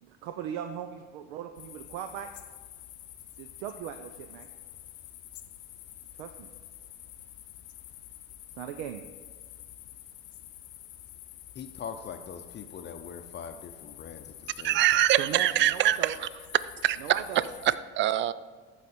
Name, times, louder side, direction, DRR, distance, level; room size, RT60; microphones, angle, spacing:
voice 1, 0.0-2.3 3.4-4.5 6.1-6.5 8.5-9.0 15.2-16.2 17.0-17.4, right 9 dB, 85° right, 0.6 m, -38 dB
sound 1, 1.6-17.8, left 13 dB, 65° left, 0.8 m, -48 dB
voice 2, 11.6-15.0, left 6 dB, 35° left, 0.6 m, -42 dB
voice 3, 14.6-16.2 16.8-17.0 17.7-18.3, right 13 dB, 35° right, 0.4 m, -24 dB
14.0 x 4.9 x 4.3 m
supercardioid pair, 105°, 32 cm